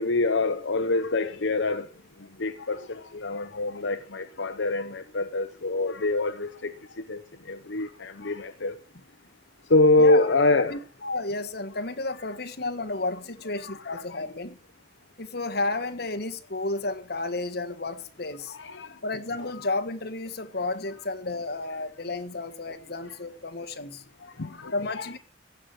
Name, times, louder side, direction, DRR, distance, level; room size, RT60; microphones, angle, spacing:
voice 1, 0.0-1.9 2.4-6.7 7.1-7.2 7.5-8.8 9.7-10.8 13.6-13.9 18.5-18.9 24.2-25.1, left 2 dB, 80° left, 1.0 m, -25 dB
voice 2, 10.0-10.3 10.7-14.6 15.2-18.6 19.0-24.0 24.7-25.2, left 2 dB, 60° left, 1.6 m, -32 dB
16.0 x 5.9 x 9.5 m
head